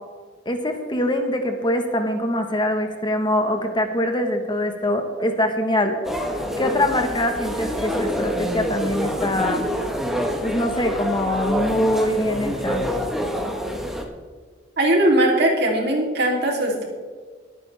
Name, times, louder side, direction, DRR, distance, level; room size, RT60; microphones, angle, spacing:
voice 1, 0.4-6.0 6.6-9.6 10.4-12.9, left 1 dB, 25° left, 5 dB, 1.3 m, -23 dB
sound 1, 6.0-14.0, equal, ahead, 1.3 m, -26 dB
voice 2, 14.8-16.9, right 1 dB, 65° right, -1 dB, 3.2 m, -19 dB
22.5 x 9.3 x 3.5 m, 1.5 s
head